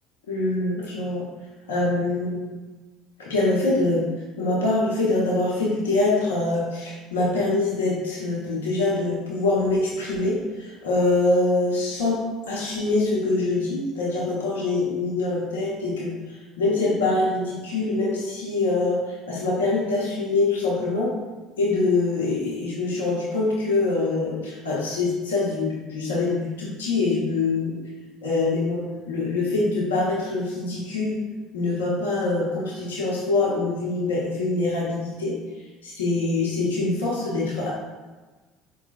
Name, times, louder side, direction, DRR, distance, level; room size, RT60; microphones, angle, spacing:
voice 1, 0.3-1.3 1.7-2.4 3.2-4.1 4.4-21.1 21.6-27.7 28.2-31.2 31.5-35.3 35.8-37.7, left 2 dB, 85° left, -6 dB, 0.8 m, -24 dB
4.6 x 3.1 x 2.3 m, 1.3 s
hypercardioid pair, 65°, 0 cm